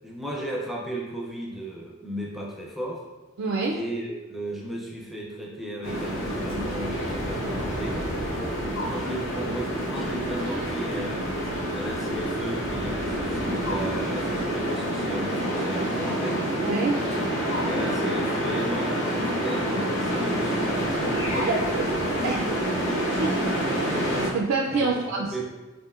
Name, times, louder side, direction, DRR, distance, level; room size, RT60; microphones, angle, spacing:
voice 1, 0.0-3.0 3.7-8.1 8.7-11.3 11.7-16.4 17.1-17.3 17.6-22.9 24.7-25.4, equal, ahead, -3 dB, 0.5 m, -35 dB
voice 2, 3.4-3.8 16.6-17.0 21.5-21.9 22.2-22.5 23.2-25.4, right 3 dB, 65° right, -1 dB, 0.4 m, -27 dB
sound 1, 5.8-24.3, equal, 65° left, 1.1 m, -27 dB
5.4 x 2.6 x 2.4 m, 1.2 s
head